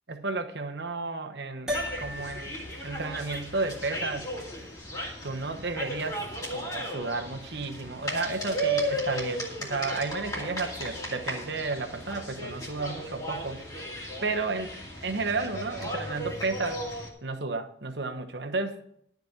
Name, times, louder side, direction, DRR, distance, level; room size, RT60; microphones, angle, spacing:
voice 1, 0.1-1.7 2.0-2.6 2.8-4.3 5.2-13.6 14.2-14.7 15.0-16.8 17.2-18.9, right 3 dB, 70° right, 7 dB, 1.1 m, -32 dB
sound 1, 1.7-17.1, right 1 dB, 20° left, 2.4 m, -35 dB
sound 2, 1.7-6.2, left 1 dB, 5° right, 2.4 m, -40 dB
12.0 x 5.2 x 8.0 m, 0.70 s
head